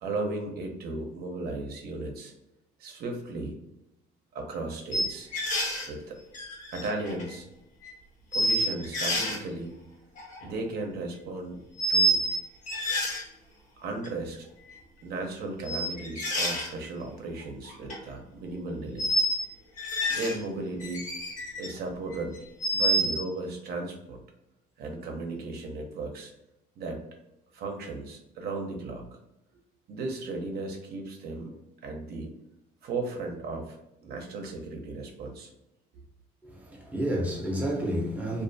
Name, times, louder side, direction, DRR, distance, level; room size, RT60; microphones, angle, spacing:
voice 1, 0.0-2.3 2.8-3.6 4.3-5.3 5.8-6.2 6.7-7.5 8.3-9.7 10.4-11.6 11.9-12.2 13.8-14.5 15.0-19.1 20.1-21.1 21.6-22.4 22.7-24.2 24.8-26.3 26.8-27.0 27.5-29.0 29.9-31.6 31.8-32.3 32.8-35.5, right 2 dB, 65° right, 0.6 m, -35 dB
sound 1, 4.9-5.9 6.3-7.3 7.8-7.9 8.3-9.4 10.2-10.5 11.8-12.4 12.6-13.2 14.0-14.1 15.6-16.7 17.6-18.0 19.0-19.4 19.8-20.4 20.8-21.7 22.1-23.2, right 1 dB, 50° left, 0.9 m, -28 dB
voice 2, 36.4-38.4, equal, 10° right, 0.7 m, -30 dB
2.4 x 2.4 x 2.5 m
cardioid pair, 110°, 17 cm